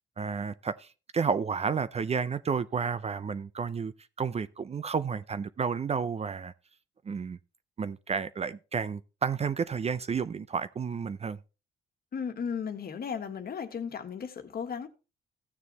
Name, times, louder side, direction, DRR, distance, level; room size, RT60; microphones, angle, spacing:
voice 1, 0.2-3.9 4.2-6.5 7.1-7.4 7.8-11.4, right 6 dB, 30° right, 0.5 m, -31 dB
voice 2, 12.1-14.9, left 6 dB, 50° left, 1.5 m, -35 dB
15.0 x 6.8 x 3.1 m
cardioid pair, 90°, 20 cm